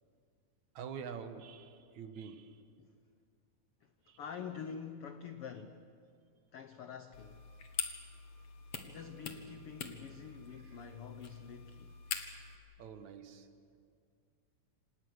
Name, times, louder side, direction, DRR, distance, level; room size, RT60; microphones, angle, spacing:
voice 1, 0.7-2.7 4.0-4.2 8.3-8.4 10.5-10.9 12.8-13.8, right 6 dB, 65° right, 2.4 m, -47 dB
voice 2, 3.8-5.8 6.5-7.5 8.7-11.9, left 7 dB, 85° left, 1.2 m, -47 dB
sound 1, 7.1-12.6, left 6 dB, 55° left, 2.3 m, -44 dB
28.0 x 27.0 x 6.5 m
omnidirectional pair, 3.9 m